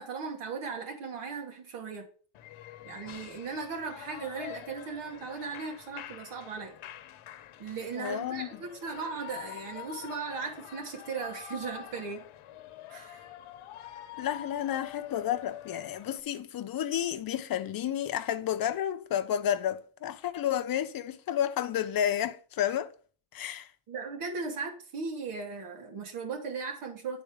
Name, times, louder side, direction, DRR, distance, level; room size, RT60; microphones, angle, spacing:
voice 1, 0.0-2.0 2.8-6.7 7.6-12.2 12.9-13.3 23.9-27.2, right 5 dB, 80° right, 2.4 m, -37 dB
Shout / Cheering, 2.3-16.2, left 12 dB, 80° left, 1.0 m, -46 dB
voice 2, 8.0-8.5 14.2-22.9 23.3-23.7, left 10 dB, 45° left, 0.7 m, -31 dB
9.9 x 4.2 x 4.8 m
cardioid pair, 150°, 49 cm